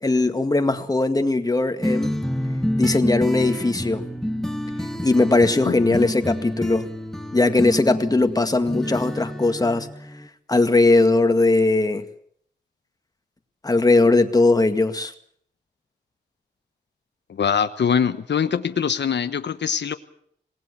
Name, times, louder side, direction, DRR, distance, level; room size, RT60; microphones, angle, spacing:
voice 1, 0.0-2.1 2.8-4.0 5.0-6.9 7.3-9.9 10.5-12.0 13.6-15.1, left 2 dB, 20° left, 7 dB, 2.0 m, -19 dB
sound 1, 1.8-10.3, left 1 dB, ahead, 1.8 m, -28 dB
voice 2, 5.6-6.0 17.3-19.9, left 7 dB, 85° left, 10 dB, 1.2 m, -23 dB
26.5 x 19.0 x 6.9 m, 0.65 s
wide cardioid pair, 130°, 18 cm